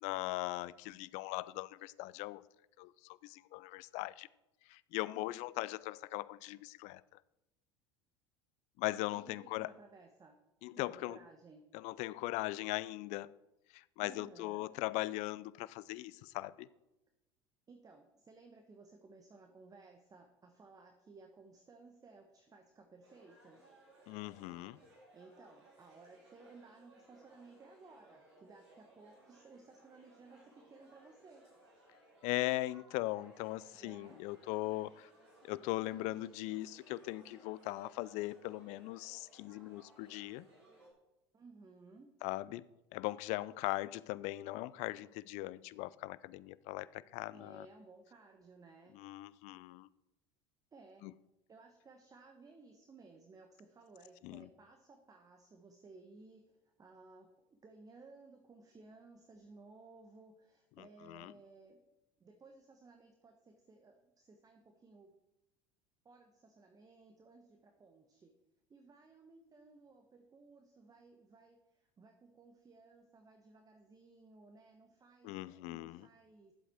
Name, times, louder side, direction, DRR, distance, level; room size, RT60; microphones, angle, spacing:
voice 1, 0.0-2.4 2.8-4.3 4.7-7.0 8.8-9.7 10.6-11.2 11.7-13.4 13.7-16.7 24.1-24.8 32.2-35.1 35.4-40.5 42.2-42.7 42.9-47.7 48.9-49.9 51.0-51.1 54.2-54.5 60.8-61.3 75.2-76.1, left 18 dB, 55° left, 0.5 m, -39 dB
voice 2, 9.1-10.4 10.7-11.7 14.0-14.7 17.7-23.7 25.1-31.5 33.8-34.2 41.3-42.1 47.3-49.0 50.7-51.1 51.5-61.9 62.2-65.1 66.0-68.3 68.7-76.5, right 3 dB, 25° right, 1.2 m, -59 dB
sound 1, 23.0-40.9, right 1 dB, 85° right, 3.9 m, -63 dB
11.5 x 7.8 x 4.5 m
hypercardioid pair, 75°, 14 cm